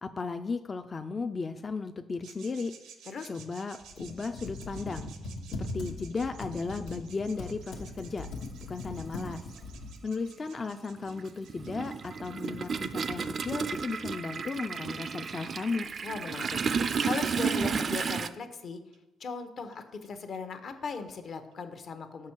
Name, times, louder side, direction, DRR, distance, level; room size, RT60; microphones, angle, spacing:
voice 1, 0.0-2.7 3.3-5.1 5.5-8.3 8.7-9.5 10.0-15.9, left 4 dB, 35° left, 8 dB, 0.3 m, -35 dB
sound 1, 2.2-15.7 17.0-17.1 17.7-17.8 18.5-18.6 18.9-19.0 19.3-19.4 19.7-19.8 20.0-20.1 20.3-20.4 20.7-20.8 21.1-21.2 21.5-21.6, right 7 dB, 90° right, 0.6 m, -54 dB
Computer keyboard, 3.8-10.0, left 2 dB, 85° left, 1.0 m, -40 dB
Toilet flush, 7.8-7.9 9.2-9.3 9.7-18.3, right 5 dB, 50° right, 0.3 m, -32 dB
voice 2, 16.0-16.6 17.0-18.8 19.2-22.3, left 4 dB, 55° left, 8 dB, 0.8 m, -38 dB
6.0 x 5.5 x 4.4 m, 0.96 s
cardioid pair, 90°, 0 cm